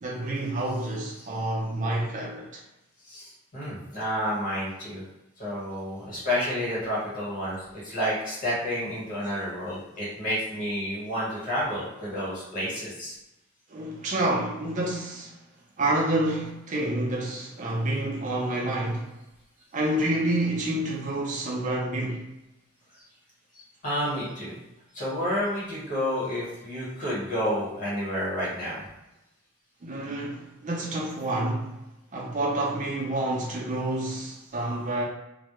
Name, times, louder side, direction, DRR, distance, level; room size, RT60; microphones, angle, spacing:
voice 1, 0.0-2.6 13.7-15.3 15.8-19.1 19.7-22.2 29.8-31.7 32.1-35.0, right 1 dB, 35° right, 0.4 m, -28 dB
voice 2, 3.1-5.0 5.4-13.1 23.8-24.6 24.9-28.9, equal, 40° left, 1.1 m, -30 dB
2.1 x 2.0 x 2.9 m
head